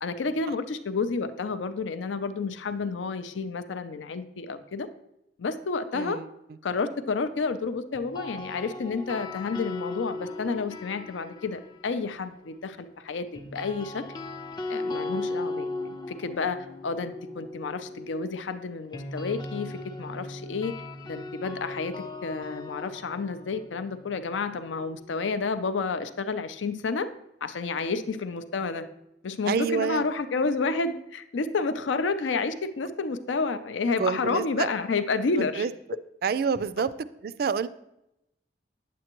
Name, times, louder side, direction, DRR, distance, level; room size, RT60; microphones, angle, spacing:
voice 1, 0.0-4.9 5.4-6.2 6.6-14.0 14.7-20.8 21.0-27.1 27.4-28.9 29.2-35.7, left 4 dB, 85° left, 11 dB, 0.5 m, -30 dB
voice 2, 5.9-6.2 29.5-30.0 34.0-34.7 35.4-35.7 36.2-36.9 37.2-37.7, right 6 dB, 55° right, 14 dB, 0.3 m, -27 dB
sound 1, 7.9-12.1 13.3-25.2, left 2 dB, 25° left, 0.4 m, -38 dB
9.2 x 7.7 x 2.9 m, 0.85 s
head